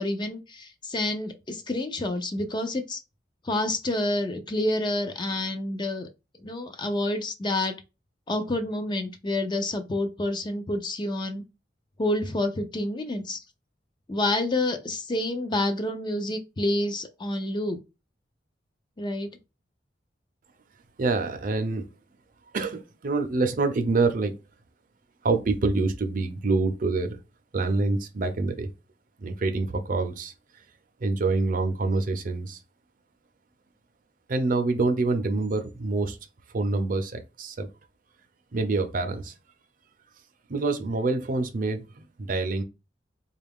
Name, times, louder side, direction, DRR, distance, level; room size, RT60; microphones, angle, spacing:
voice 1, 0.0-3.0 3.4-6.1 6.4-7.8 8.3-11.4 12.0-13.4 14.1-17.8 19.0-19.3, left 1 dB, 25° left, 0.5 m, -28 dB
voice 2, 21.0-21.9 22.5-24.4 25.2-27.2 27.5-28.7 29.2-30.3 31.0-32.6 34.3-36.2 36.5-37.7 38.5-39.3 40.5-42.6, right 3 dB, 50° right, 0.6 m, -26 dB
3.7 x 2.4 x 3.5 m
head